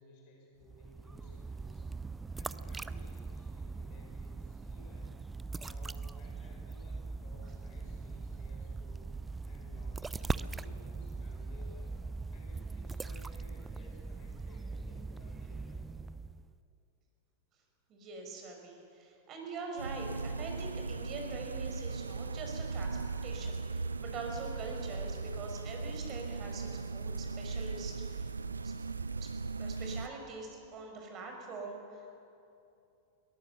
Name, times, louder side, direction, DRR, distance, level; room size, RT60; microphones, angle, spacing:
voice 1, 0.0-5.3 5.5-12.0 12.3-16.0, left 2 dB, 45° left, 0 dB, 5.3 m, -57 dB
sound 1, 0.6-16.5, right 4 dB, 10° right, 0.5 m, -41 dB
voice 2, 17.9-28.3 28.6-28.7 29.2-29.3 29.6-32.1, right 3 dB, 35° right, 3 dB, 5.2 m, -44 dB
sound 2, 19.8-30.1, right 4 dB, 75° right, 0.5 m, -38 dB
22.5 x 18.5 x 6.8 m, 2.6 s
figure-of-eight pair, 90°, 0 cm